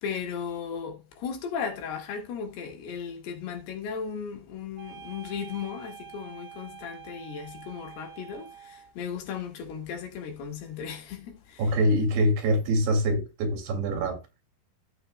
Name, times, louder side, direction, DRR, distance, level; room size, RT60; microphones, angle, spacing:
voice 1, 0.0-11.7, left 6 dB, 80° left, 4.0 m, -36 dB
sound 1, 4.8-9.0, right 9 dB, 55° right, 3.0 m, -46 dB
voice 2, 11.6-14.2, equal, 85° right, 4.1 m, -24 dB
14.5 x 7.0 x 2.2 m
omnidirectional pair, 4.5 m